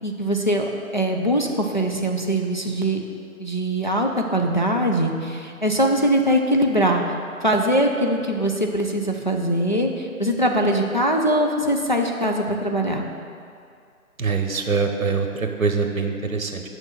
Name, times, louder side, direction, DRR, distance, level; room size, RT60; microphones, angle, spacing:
voice 1, 0.0-3.0 3.4-7.0 7.4-13.1, right 1 dB, 35° left, 2 dB, 0.5 m, -22 dB
voice 2, 14.2-16.6, right 4 dB, 70° right, 5 dB, 1.1 m, -24 dB
6.5 x 6.3 x 7.2 m, 2.4 s
figure-of-eight pair, 155°, 43 cm